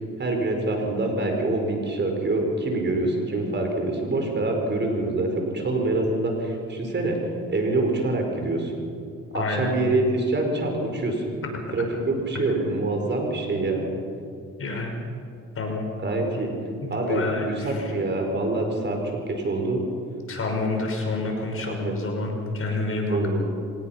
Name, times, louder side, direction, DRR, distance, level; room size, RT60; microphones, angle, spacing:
voice 1, 0.2-7.2 7.5-8.8 9.3-11.2 11.7-13.8 16.0-16.5 16.9-19.0 19.3-19.8 21.7-22.0 23.1-23.5, right 2 dB, 35° right, 2 dB, 5.1 m, -25 dB
voice 2, 9.3-9.7 14.6-15.1 15.6-15.9 16.2-16.4 16.8-17.9 20.3-23.2, left 2 dB, 45° left, 2 dB, 5.5 m, -28 dB
25.0 x 18.5 x 5.9 m, 2.3 s
supercardioid pair, 80°, 30 cm